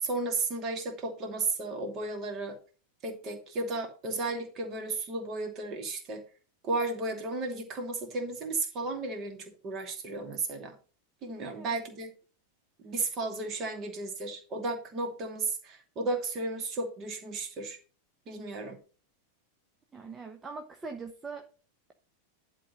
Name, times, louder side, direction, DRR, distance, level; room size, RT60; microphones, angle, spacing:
voice 1, 0.0-2.6 3.0-6.2 6.6-10.8 11.2-12.1 12.8-17.8 18.3-18.8, right 3 dB, 35° right, 4 dB, 2.7 m, -34 dB
voice 2, 19.9-21.5, right 4 dB, 15° right, 5 dB, 1.0 m, -42 dB
11.0 x 4.0 x 6.6 m, 0.36 s
figure-of-eight pair, 90°, 0 cm